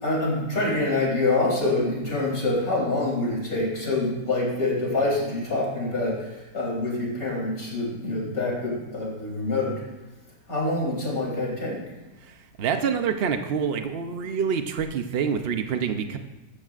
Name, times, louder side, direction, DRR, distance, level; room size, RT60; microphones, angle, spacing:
voice 1, 0.0-9.8 10.5-11.8, left 2 dB, 50° left, -4 dB, 4.2 m, -26 dB
voice 2, 12.2-16.2, right 6 dB, 80° right, 7 dB, 0.5 m, -27 dB
13.5 x 13.0 x 2.5 m, 1.1 s
omnidirectional pair, 1.9 m